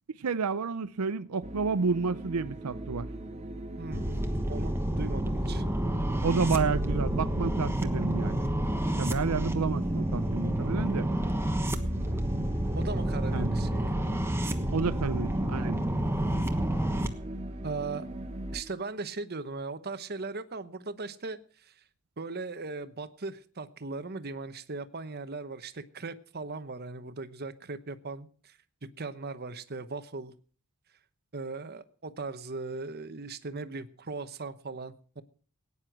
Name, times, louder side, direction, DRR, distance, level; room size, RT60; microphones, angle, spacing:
voice 1, 0.2-3.1 6.2-8.5 9.0-11.1 13.3-13.5 14.7-15.8, right 5 dB, 85° right, 0.6 m, -30 dB
sound 1, 1.4-18.6, right 1 dB, 30° right, 1.4 m, -41 dB
voice 2, 3.8-4.1 4.5-5.6 12.8-14.0 17.6-18.1 18.5-21.7 22.2-30.3 31.3-35.2, right 3 dB, 45° right, 1.0 m, -38 dB
sound 2, 3.9-17.1, right 1 dB, 10° right, 1.2 m, -29 dB
17.5 x 9.8 x 6.1 m
head